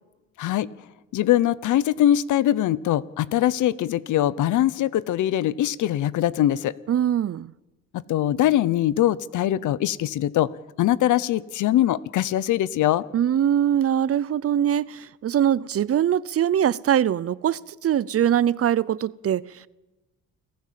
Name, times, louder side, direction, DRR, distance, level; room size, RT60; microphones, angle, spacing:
voice 1, 0.4-0.7 1.1-6.7 7.9-10.5 10.8-13.0, left 12 dB, 80° left, 0.9 m, -22 dB
voice 2, 6.9-7.5 13.1-19.7, right 10 dB, 50° right, 0.7 m, -22 dB
28.5 x 15.0 x 7.6 m
cardioid pair, 90°, 30 cm